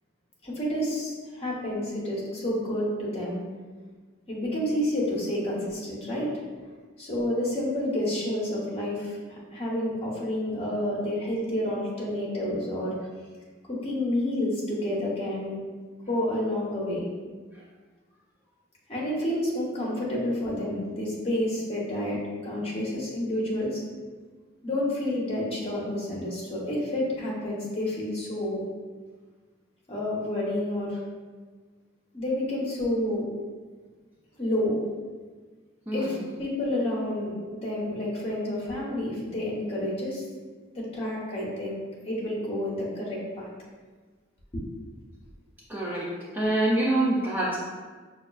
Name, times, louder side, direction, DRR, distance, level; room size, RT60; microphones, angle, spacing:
voice 1, 0.4-3.4 4.3-6.3 7.0-12.9 13.7-15.6 16.1-17.1 18.9-23.8 24.6-28.6 29.9-31.0 32.1-33.2 34.4-34.8 35.9-40.2 40.7-41.8 42.1-43.5 44.5-44.6, left 1 dB, 30° left, -5 dB, 0.9 m, -29 dB
voice 2, 35.9-36.3 45.7-46.1 46.3-47.6, right 1 dB, 10° right, -6 dB, 0.4 m, -25 dB
5.7 x 2.3 x 2.3 m, 1.4 s
head